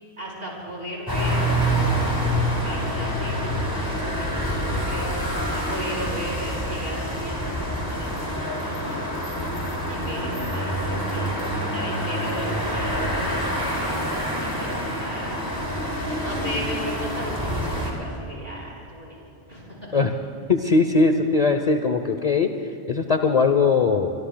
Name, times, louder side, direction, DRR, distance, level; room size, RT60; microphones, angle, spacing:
voice 1, 0.2-1.6 2.6-9.0 9.9-13.4 13.9-15.6 16.2-19.2 19.5-20.0, equal, 55° right, -3 dB, 5.2 m, -36 dB
sound 1, 1.1-17.9, equal, 20° left, 3.0 m, -26 dB
voice 2, 20.5-22.5 22.9-24.1, left 4 dB, 40° left, 5 dB, 0.7 m, -20 dB
26.0 x 22.5 x 2.3 m, 2.8 s
omnidirectional pair, 1.2 m